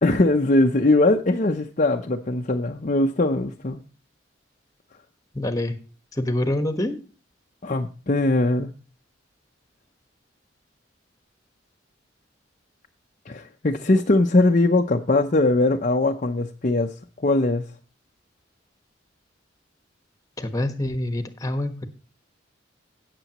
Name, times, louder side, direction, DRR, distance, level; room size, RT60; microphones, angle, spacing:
voice 1, 0.0-3.8 7.6-8.7 13.3-16.9 17.2-17.6, left 2 dB, 40° left, 0.7 m, -21 dB
voice 2, 5.3-5.8 6.2-7.0 20.4-21.9, left 1 dB, 15° left, 1.3 m, -26 dB
17.0 x 6.9 x 3.0 m
head